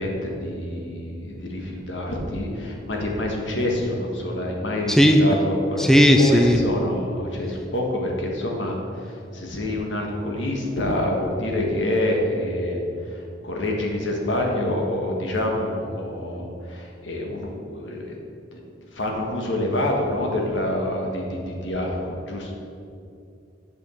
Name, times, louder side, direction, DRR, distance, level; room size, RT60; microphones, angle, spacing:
voice 1, 0.0-5.8 6.2-18.2 18.5-18.6 18.9-22.5, left 1 dB, 75° left, 0 dB, 1.5 m, -27 dB
voice 2, 4.9-5.2 5.8-6.6, equal, ahead, 3 dB, 0.4 m, -15 dB
8.3 x 5.2 x 6.4 m, 2.5 s
head